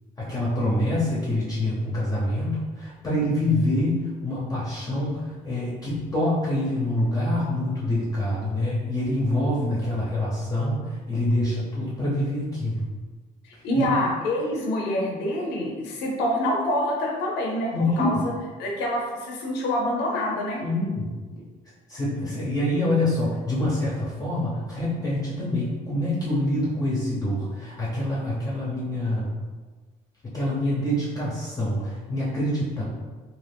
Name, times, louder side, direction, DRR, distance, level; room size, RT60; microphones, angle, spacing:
voice 1, 0.2-12.8 13.7-14.0 17.7-18.2 20.6-21.1 21.9-29.3 30.2-32.8, left 1 dB, 20° left, -7 dB, 0.7 m, -26 dB
voice 2, 13.4-18.3 18.6-20.6, left 1 dB, 90° left, -1 dB, 0.6 m, -26 dB
2.5 x 2.3 x 3.4 m, 1.3 s
cardioid pair, 110°, 17 cm